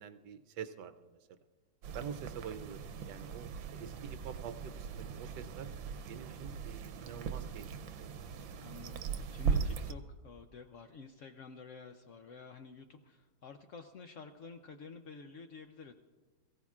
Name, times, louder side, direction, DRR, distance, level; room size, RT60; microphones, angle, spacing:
voice 1, 0.0-1.4 1.9-5.7 6.1-8.1, right 8 dB, 70° right, 9 dB, 1.2 m, -47 dB
sound 1, 1.8-9.9, right 6 dB, 90° right, 1.5 m, -39 dB
voice 2, 8.6-15.9, left 4 dB, 80° left, 7 dB, 0.6 m, -50 dB
23.0 x 15.5 x 2.4 m, 1.3 s
omnidirectional pair, 2.0 m